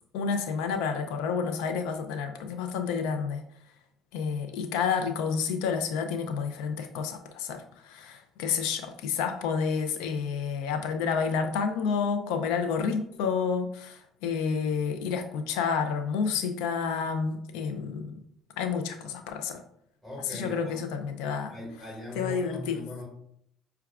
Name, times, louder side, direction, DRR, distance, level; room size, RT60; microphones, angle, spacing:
voice 1, 0.1-3.4 4.1-18.2 18.6-19.6 20.3-21.6 22.2-22.8, left 6 dB, 85° left, 6 dB, 0.3 m, -30 dB
voice 2, 20.0-20.8 21.5-23.0, left 1 dB, 10° left, -7 dB, 1.4 m, -39 dB
5.7 x 2.3 x 2.3 m, 0.71 s
supercardioid pair, 90°, 0 cm